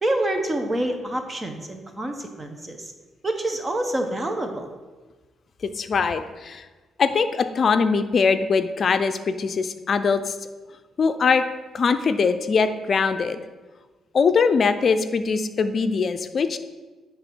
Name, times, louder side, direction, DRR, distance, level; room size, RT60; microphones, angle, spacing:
voice 1, 0.0-2.9 3.2-4.7, right 1 dB, 20° right, 5 dB, 1.0 m, -27 dB
voice 2, 5.6-6.7 7.0-10.3 11.0-11.4 11.7-13.4 14.1-16.6, left 5 dB, 45° left, 10 dB, 0.5 m, -22 dB
9.6 x 3.6 x 6.1 m, 1.3 s
cardioid pair, 90°, 0 cm